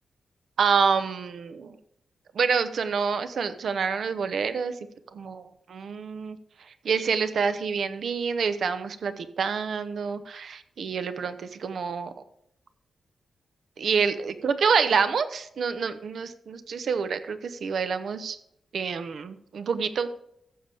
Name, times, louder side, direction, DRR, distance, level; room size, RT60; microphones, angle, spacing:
voice 1, 0.6-1.8 2.3-4.7 5.1-6.4 6.8-12.2 13.8-18.4 18.7-20.1, right 6 dB, 70° right, 11 dB, 0.9 m, -27 dB
14.5 x 6.9 x 3.5 m, 0.76 s
cardioid pair, 100°, 0 cm